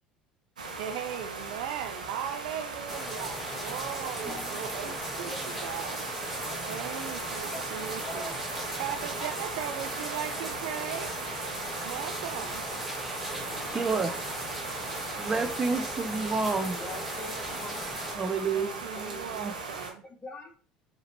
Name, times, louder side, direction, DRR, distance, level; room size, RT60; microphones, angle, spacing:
sound 1, 0.6-19.9, right 4 dB, 80° right, 0.7 m, -38 dB
voice 1, 0.8-6.3 6.6-8.3 8.8-11.2 11.8-12.6 18.5-20.0, right 10 dB, 65° right, 7 dB, 0.3 m, -38 dB
sound 2, 2.9-18.2, equal, 5° right, 1.8 m, -38 dB
voice 2, 4.2-4.5 4.8-5.6 6.4-6.8 7.4-8.3 12.3-12.5 13.3-14.2 15.3-15.5 16.7-19.4 20.0-20.6, left 1 dB, 25° left, 2 dB, 1.4 m, -45 dB
voice 3, 13.7-14.1 15.2-16.8 18.2-18.8 19.4-19.5, right 4 dB, 20° right, 8 dB, 0.7 m, -29 dB
4.8 x 2.9 x 2.9 m, 0.43 s
figure-of-eight pair, 65°, 4 cm